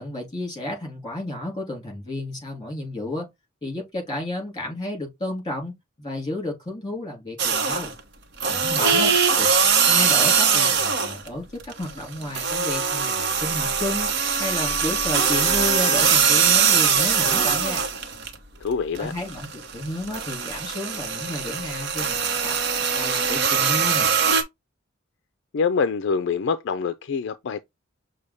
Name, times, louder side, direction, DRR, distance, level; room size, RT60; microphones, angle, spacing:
voice 1, 0.0-3.3 3.6-5.7 6.0-7.9 8.5-9.1 9.4-9.5 9.9-14.1 14.4-17.8 19.0-19.5 19.7-24.1, left 1 dB, 20° left, 3.4 m, -32 dB
sound 1, 7.4-8.0 8.4-11.3 11.6-18.3 18.7-24.4, right 6 dB, 60° right, 0.9 m, -22 dB
voice 2, 8.8-9.2 18.6-19.1 25.5-27.6, left 5 dB, 60° left, 0.4 m, -25 dB
6.4 x 2.2 x 3.4 m
head